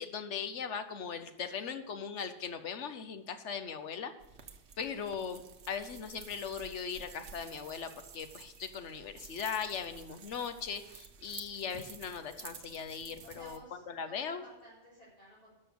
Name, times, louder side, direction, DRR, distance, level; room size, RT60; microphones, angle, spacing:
voice 1, 0.0-4.1 4.8-14.4, left 6 dB, 90° left, 9 dB, 1.3 m, -39 dB
sound 1, 4.2-13.6, right 6 dB, 75° right, 1.2 m, -52 dB
voice 2, 13.2-15.5, equal, 30° left, -10 dB, 4.1 m, -55 dB
12.0 x 6.6 x 7.0 m, 0.96 s
omnidirectional pair, 1.2 m